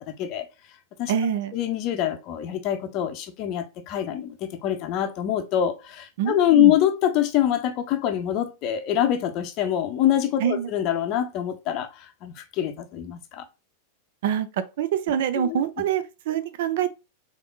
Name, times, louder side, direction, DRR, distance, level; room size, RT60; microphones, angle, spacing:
voice 1, 0.1-0.5 1.0-1.1 1.5-13.4 15.4-15.6, left 11 dB, 40° left, 0.6 m, -25 dB
voice 2, 1.1-1.6 6.2-6.7 10.4-10.7 14.2-16.9, right 9 dB, 55° right, 0.4 m, -25 dB
3.6 x 3.4 x 2.3 m
figure-of-eight pair, 90°, 0 cm